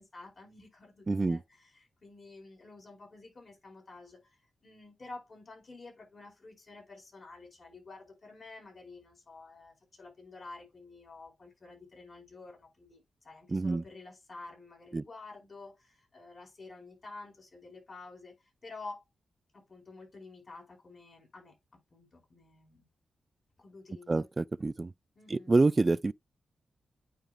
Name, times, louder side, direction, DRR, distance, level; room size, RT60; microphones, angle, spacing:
voice 1, 0.0-18.3 18.6-19.1 19.5-21.5 21.9-22.9 23.6-24.3 25.1-25.5, left 3 dB, 45° left, 4.7 m, -50 dB
voice 2, 1.1-1.4 13.5-13.8 14.9-15.0 24.1-24.9 25.3-26.1, right 3 dB, 30° right, 0.3 m, -27 dB
9.2 x 4.9 x 2.5 m
cardioid pair, 90°, 0 cm